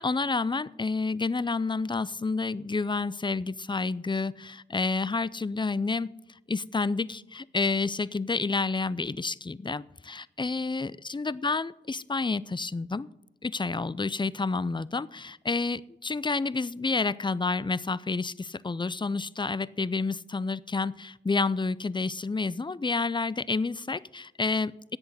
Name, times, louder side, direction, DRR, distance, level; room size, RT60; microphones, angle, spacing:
voice 1, 0.0-6.1 6.5-13.1 13.4-24.7, left 3 dB, 25° left, 20 dB, 0.4 m, -29 dB
10.5 x 8.1 x 9.4 m, 0.92 s
cardioid pair, 45°, 19 cm